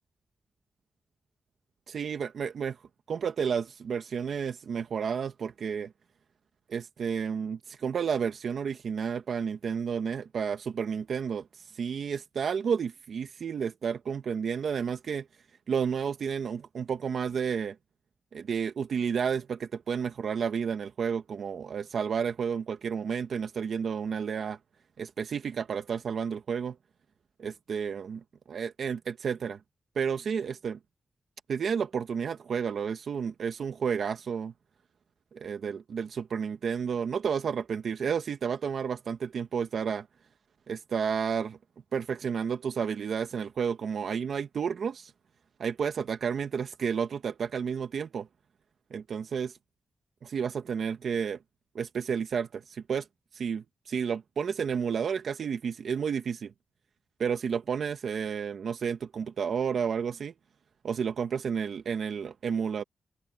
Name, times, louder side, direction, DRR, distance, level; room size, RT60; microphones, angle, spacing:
voice 1, 1.9-2.8 3.1-5.9 6.7-15.2 15.7-17.8 18.3-24.6 25.0-26.8 27.4-29.6 29.9-30.8 31.5-34.5 35.3-40.1 40.7-41.6 41.9-45.1 45.6-48.3 48.9-49.6 50.2-51.4 51.7-53.1 53.3-56.5 57.2-60.3 60.8-62.8, right 6 dB, 75° right, 1.4 m, -31 dB
cardioid pair, 70°, 0 cm